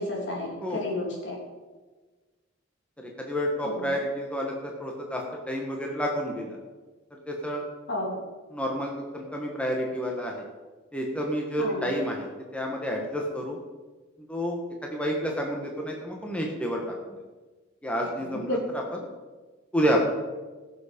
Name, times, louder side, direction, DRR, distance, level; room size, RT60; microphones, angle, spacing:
voice 1, 0.0-1.4 3.6-3.9 7.9-8.2 11.6-11.8 18.5-18.6, left 1 dB, 60° left, -1 dB, 3.1 m, -31 dB
voice 2, 3.0-6.6 7.1-7.6 8.5-10.4 10.9-12.3 12.5-13.6 14.2-17.2 17.8-19.0 19.7-20.0, equal, 5° left, 0 dB, 1.4 m, -30 dB
17.0 x 7.1 x 5.2 m, 1.3 s
head